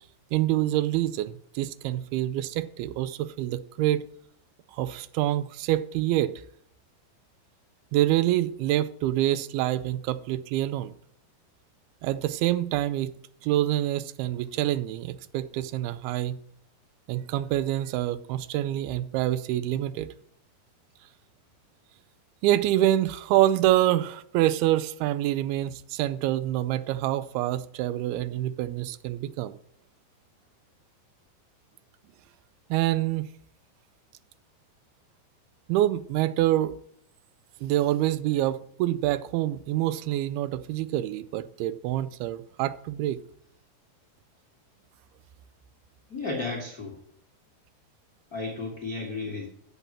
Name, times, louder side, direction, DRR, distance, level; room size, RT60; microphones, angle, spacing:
voice 1, 0.3-4.0 4.7-6.3 7.9-10.9 12.0-13.1 13.4-16.4 17.1-20.1 22.4-29.6 32.7-33.3 35.7-36.7 37.6-43.2, right 14 dB, 85° right, 2.4 m, -26 dB
voice 2, 46.1-47.0 48.3-49.5, left 3 dB, 75° left, 0.8 m, -33 dB
8.4 x 6.9 x 7.3 m
omnidirectional pair, 4.5 m